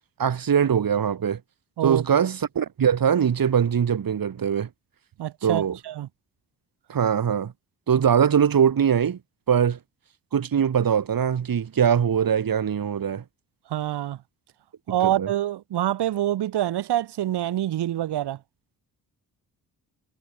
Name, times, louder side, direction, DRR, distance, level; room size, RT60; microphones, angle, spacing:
voice 1, 0.2-1.4 1.8-4.7 5.4-5.8 6.9-7.5 7.9-9.2 9.5-9.8 10.3-13.2 15.0-15.3, right 8 dB, 60° right, 7.7 m, -22 dB
voice 2, 5.2-6.1 13.7-14.2 14.9-18.4, right 12 dB, 85° right, 7.2 m, -26 dB
cardioid pair, 75°, 39 cm